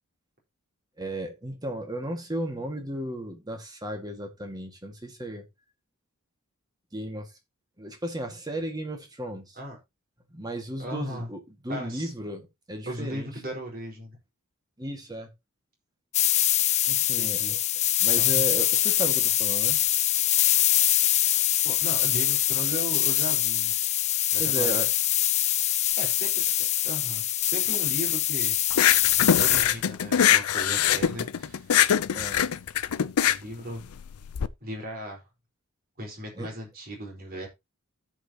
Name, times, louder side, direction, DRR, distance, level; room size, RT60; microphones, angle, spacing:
voice 1, 1.0-5.5 6.9-7.3 7.8-9.5 10.3-13.3 14.8-15.3 16.9-17.6 18.0-19.8 24.4-24.9 32.1-32.4 36.4-36.5, right 1 dB, 20° right, 1.9 m, -34 dB
voice 2, 10.8-11.3 11.7-12.1 12.9-14.2 17.1-17.6 18.2-18.4 21.6-23.7 24.3-24.8 26.0-28.6 29.2-31.7 33.3-33.9 34.6-35.2 36.0-37.5, equal, 45° right, 4.4 m, -37 dB
sound 1, 16.1-29.6, left 13 dB, 30° left, 0.5 m, -24 dB
sound 2, 28.7-34.5, left 9 dB, 90° left, 0.5 m, -23 dB
16.0 x 5.5 x 2.9 m
head